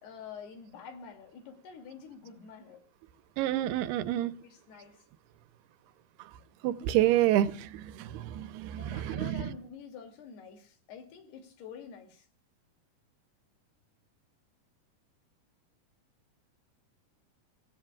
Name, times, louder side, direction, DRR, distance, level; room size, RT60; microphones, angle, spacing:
voice 1, 0.0-2.8 4.4-5.0 8.7-12.3, left 6 dB, 85° left, 4.6 m, -47 dB
voice 2, 3.4-4.3 6.6-9.5, right 13 dB, 90° right, 2.9 m, -28 dB
28.5 x 16.0 x 2.4 m
omnidirectional pair, 4.5 m